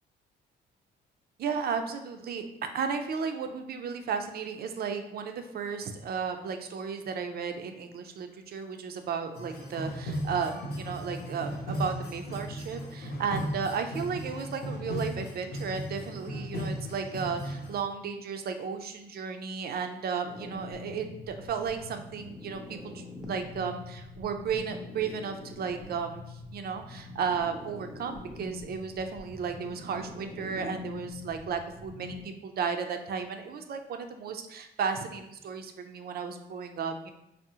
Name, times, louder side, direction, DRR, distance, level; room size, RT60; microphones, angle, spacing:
voice 1, 1.4-37.1, right 6 dB, 50° right, 6 dB, 0.4 m, -34 dB
sound 1, 9.3-17.8, equal, 50° left, 0.7 m, -36 dB
sound 2, 20.3-32.2, left 2 dB, ahead, 0.6 m, -44 dB
3.6 x 2.0 x 2.7 m, 0.84 s
cardioid pair, 90°, 20 cm